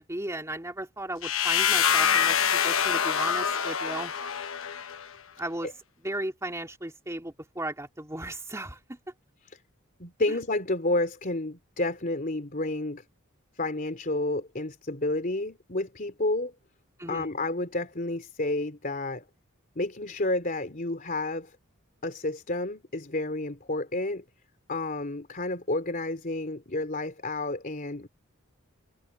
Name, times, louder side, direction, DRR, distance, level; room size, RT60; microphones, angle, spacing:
voice 1, 0.0-4.1 5.4-5.7 6.0-9.0 17.0-17.3, right 1 dB, 15° right, 2.9 m, -35 dB
sound 1, 1.2-5.1, left 8 dB, 70° left, 1.1 m, -25 dB
voice 2, 10.0-13.0 13.5-16.5 17.1-19.2 19.7-21.6 22.0-24.2 24.7-28.1, left 2 dB, 40° left, 3.4 m, -30 dB
head